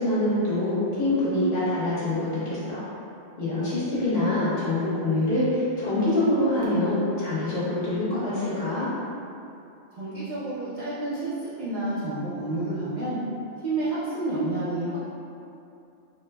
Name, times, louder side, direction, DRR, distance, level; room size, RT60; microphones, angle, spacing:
voice 1, 0.0-2.8 3.4-8.9, left 1 dB, 60° left, -11 dB, 1.2 m, -25 dB
voice 2, 9.9-11.3 11.6-13.2 13.6-15.0, right 2 dB, 50° right, -11 dB, 0.5 m, -29 dB
4.4 x 2.1 x 2.2 m, 2.6 s
omnidirectional pair, 1.2 m